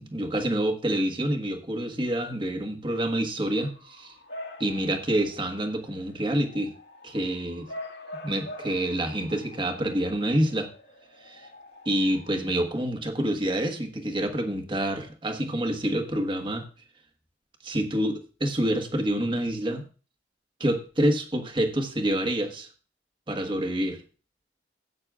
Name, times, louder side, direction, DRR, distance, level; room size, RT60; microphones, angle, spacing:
voice 1, 0.0-4.1 4.6-6.7 7.0-7.7 8.2-10.7 11.2-11.5 11.8-16.7 17.6-19.8 20.6-22.7 23.3-24.0, right 1 dB, 30° right, 5 dB, 1.4 m, -27 dB
Bark / Motor vehicle (road) / Siren, 3.6-12.3, left 1 dB, 65° left, 2.2 m, -45 dB
16.0 x 8.7 x 2.4 m, 0.36 s
head